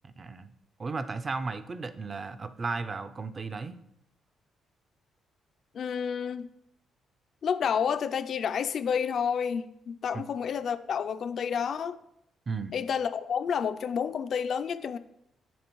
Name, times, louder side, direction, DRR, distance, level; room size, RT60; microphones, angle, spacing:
voice 1, 0.0-0.5 0.8-3.7 10.1-10.2 12.5-12.7, right 4 dB, 35° right, 11 dB, 0.4 m, -35 dB
voice 2, 5.7-6.5 7.4-12.0 12.7-15.0, left 7 dB, 60° left, 11 dB, 0.3 m, -30 dB
10.0 x 3.6 x 3.0 m, 0.79 s
cardioid pair, 90°, 0 cm